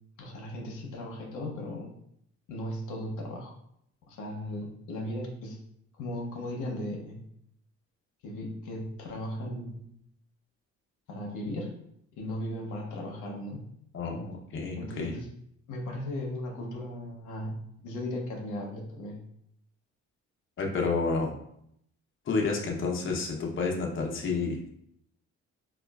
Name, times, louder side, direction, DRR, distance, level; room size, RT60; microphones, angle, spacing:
voice 1, 0.2-1.9 2.5-3.5 4.1-5.6 6.0-7.3 8.2-9.9 11.1-11.7 12.2-13.7 14.8-15.3 15.7-17.5 17.8-19.2, left 1 dB, 80° left, 0 dB, 0.7 m, -37 dB
voice 2, 13.9-15.1 20.6-21.3 22.3-24.7, left 4 dB, 40° left, 0 dB, 0.6 m, -30 dB
3.8 x 2.3 x 2.2 m, 0.73 s
cardioid pair, 90°, 30 cm